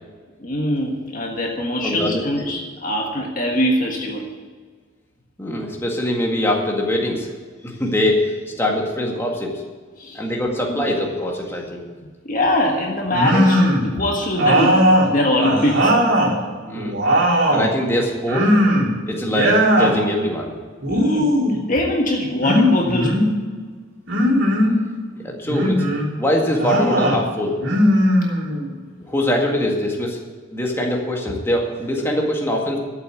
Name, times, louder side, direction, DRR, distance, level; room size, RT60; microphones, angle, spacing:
voice 1, 0.4-4.2 10.0-10.2 10.7-10.9 12.2-16.0 20.9-23.2, left 1 dB, 40° left, 1 dB, 1.6 m, -22 dB
voice 2, 1.8-2.5 5.4-7.3 7.6-9.6 10.1-11.8 16.6-17.0 17.5-18.5 19.1-20.5 25.2-25.9 26.2-27.6 29.0-30.2 30.5-32.8, left 1 dB, 10° left, -1 dB, 2.0 m, -22 dB
sound 1, 13.1-13.9 14.4-16.4 16.7-17.7 18.3-19.0 19.2-20.0 20.8-21.6 22.4-23.3 24.1-24.8 25.5-26.1 26.6-27.2 27.6-28.7, equal, 70° right, 4.2 m, -18 dB
13.0 x 8.1 x 8.4 m, 1.6 s
head